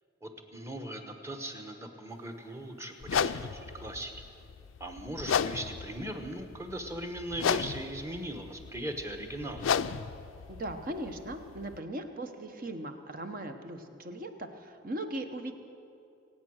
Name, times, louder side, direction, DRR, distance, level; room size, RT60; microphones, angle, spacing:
voice 1, 0.2-4.1 4.8-9.7, right 1 dB, 15° right, 5 dB, 1.1 m, -39 dB
sound 1, 3.0-11.8, left 7 dB, 85° left, 0.4 m, -34 dB
voice 2, 10.5-15.5, right 1 dB, 45° right, 7 dB, 1.0 m, -39 dB
25.5 x 8.7 x 6.4 m, 2.7 s
head